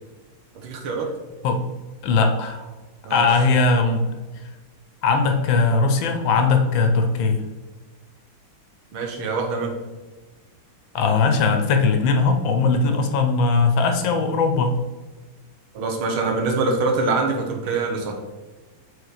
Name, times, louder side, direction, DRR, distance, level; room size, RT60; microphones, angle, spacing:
voice 1, 0.6-1.1 3.1-3.3 8.9-9.7 15.7-18.2, right 3 dB, 85° right, 2 dB, 1.9 m, -24 dB
voice 2, 1.4-2.7 3.1-4.0 5.0-7.4 10.9-14.8, left 4 dB, 75° left, 6 dB, 1.4 m, -19 dB
4.9 x 4.3 x 4.8 m, 1.3 s
omnidirectional pair, 2.3 m